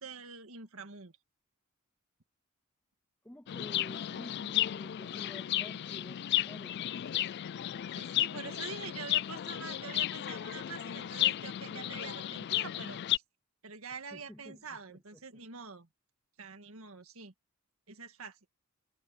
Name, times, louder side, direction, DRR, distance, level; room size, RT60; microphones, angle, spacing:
voice 1, 0.0-1.1 7.9-13.2 13.6-15.9 16.4-17.3 17.9-18.4, right 5 dB, 70° right, 1.8 m, -45 dB
voice 2, 3.2-6.8 14.1-15.0, left 1 dB, 5° left, 0.8 m, -50 dB
Chirp tweet, 3.5-13.2, left 12 dB, 50° left, 0.3 m, -34 dB
head